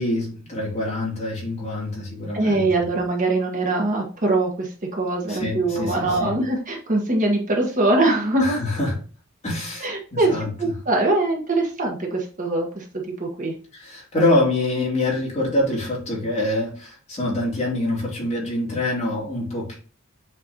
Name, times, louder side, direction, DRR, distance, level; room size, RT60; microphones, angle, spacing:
voice 1, 0.0-2.6 5.3-6.4 8.4-8.9 9.4-10.5 13.7-19.7, left 2 dB, 30° left, 2.9 m, -25 dB
voice 2, 2.3-8.6 9.8-12.8 13.2-13.5, right 2 dB, 40° right, 1.3 m, -22 dB
7.6 x 4.5 x 2.9 m
head